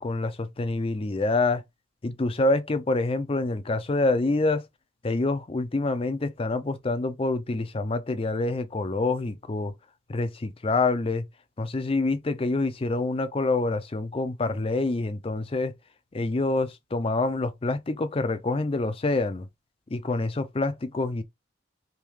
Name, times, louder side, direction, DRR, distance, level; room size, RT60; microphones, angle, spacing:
voice 1, 0.0-1.6 2.0-4.6 5.0-9.7 10.1-11.3 11.6-15.7 16.1-19.5 19.9-21.2, left 2 dB, 30° left, 0.4 m, -26 dB
3.5 x 2.7 x 3.0 m
head